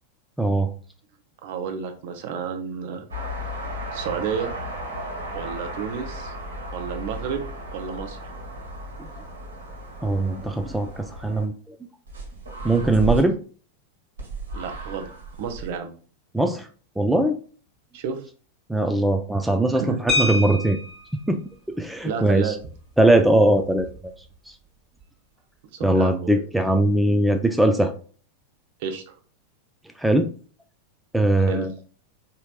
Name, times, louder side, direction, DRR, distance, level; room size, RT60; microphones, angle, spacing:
voice 1, 0.4-0.7 10.0-11.8 12.6-13.4 16.3-16.7 17.0-17.4 18.7-20.8 21.3-21.4 21.7-22.5 23.0-23.9 25.8-27.9 30.0-30.3 31.1-31.7, right 1 dB, 5° right, 6 dB, 0.3 m, -20 dB
voice 2, 1.4-3.0 3.9-4.5 5.3-6.3 6.7-7.4 7.7-8.2 14.5-15.1 15.4-15.9 17.9-18.2 19.7-20.2 22.0-22.6 25.7-26.5 28.8-29.1 31.4-31.7, right 6 dB, 50° right, 6 dB, 0.6 m, -31 dB
sound 1, 3.1-11.5 12.1-13.2 14.2-15.7, right 1 dB, 70° right, 1.5 m, -34 dB
sound 2, 20.1-21.2 22.6-22.7 23.1-23.3 23.6-23.9, left 2 dB, 20° right, 1.3 m, -26 dB
4.3 x 2.7 x 2.4 m, 0.40 s
figure-of-eight pair, 90°, 0 cm